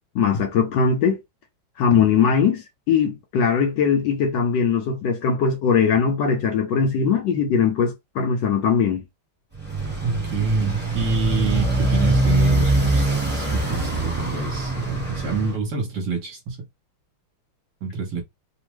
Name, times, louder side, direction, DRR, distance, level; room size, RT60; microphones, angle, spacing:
voice 1, 0.1-1.2 1.8-9.0, left 6 dB, 70° left, 1.2 m, -20 dB
Motorcycle, 9.5-15.5, right 2 dB, 5° right, 0.9 m, -22 dB
voice 2, 10.0-16.6 17.8-18.2, right 3 dB, 60° right, 1.4 m, -27 dB
3.5 x 2.0 x 3.0 m
omnidirectional pair, 2.3 m